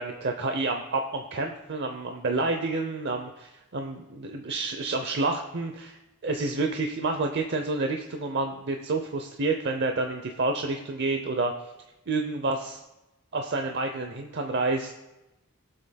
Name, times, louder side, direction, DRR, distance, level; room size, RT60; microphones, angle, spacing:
voice 1, 0.0-11.5 12.1-12.8 13.3-14.9, right 3 dB, 55° right, 4 dB, 0.8 m, -29 dB
22.0 x 7.7 x 2.3 m, 1.0 s
head